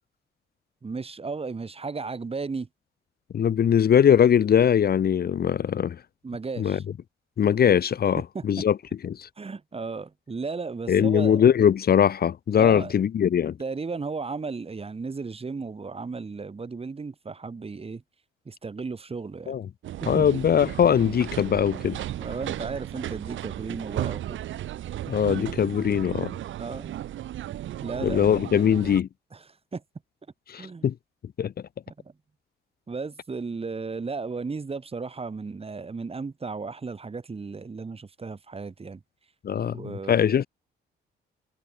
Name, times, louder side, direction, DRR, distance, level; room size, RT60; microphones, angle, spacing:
voice 1, 0.8-2.7 6.2-6.8 8.3-8.4 9.4-11.4 12.6-12.9 13.6-18.0 18.4-19.6 20.0-20.2 22.2-24.4 26.6-26.9 27.8-28.3 29.3-29.4 29.7-29.8 30.6-30.9 31.9-32.1 32.9-39.0 39.6-40.3, right 4 dB, 30° right, 5.1 m, -35 dB
voice 2, 3.3-6.0 6.6-6.8 7.4-8.8 9.0-9.3 10.9-13.6 19.5-19.6 20.1-22.0 25.1-26.3 28.0-29.1 30.5-30.9 31.4-31.5 39.4-40.5, left 8 dB, 50° left, 1.2 m, -21 dB
sound 1, 19.8-29.0, right 13 dB, 75° right, 1.8 m, -35 dB
cardioid pair, 90°, 20 cm